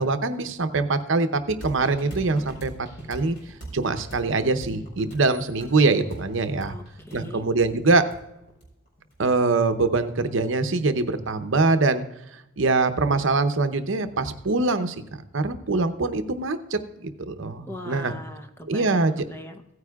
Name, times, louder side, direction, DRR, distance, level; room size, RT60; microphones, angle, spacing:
voice 1, 0.0-2.7 3.1-3.4 3.7-6.7 7.1-8.0 9.2-12.0 12.6-18.1 18.7-19.2, right 3 dB, 65° right, 9 dB, 0.8 m, -23 dB
sound 1, 1.6-9.2, right 1 dB, 50° left, 4.2 m, -41 dB
voice 2, 6.7-7.5 17.6-19.7, left 1 dB, 10° left, 6 dB, 0.7 m, -40 dB
16.5 x 9.6 x 2.4 m, 0.87 s
head